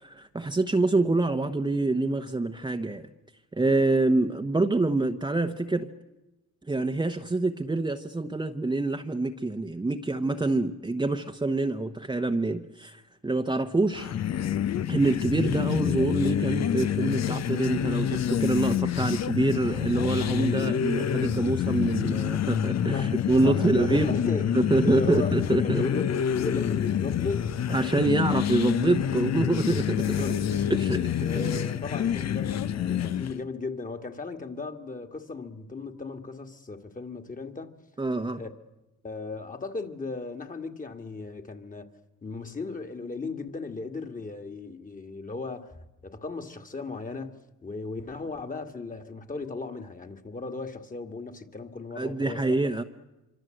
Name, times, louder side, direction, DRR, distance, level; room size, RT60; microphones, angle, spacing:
voice 1, 0.0-3.1 3.5-5.9 6.7-14.1 14.9-24.2 24.5-25.8 27.7-30.2 30.7-31.5 38.0-38.4 52.0-52.8, right 2 dB, 15° right, 1.0 m, -26 dB
sound 1, 13.9-33.4, left 9 dB, 60° left, 1.0 m, -27 dB
voice 2, 22.9-24.5 24.8-28.2 30.0-30.4 31.2-37.7 38.4-38.5 39.0-41.9 42.2-45.8 46.0-52.6, left 3 dB, 25° left, 2.1 m, -36 dB
25.5 x 25.0 x 7.9 m
cardioid pair, 90°, 30 cm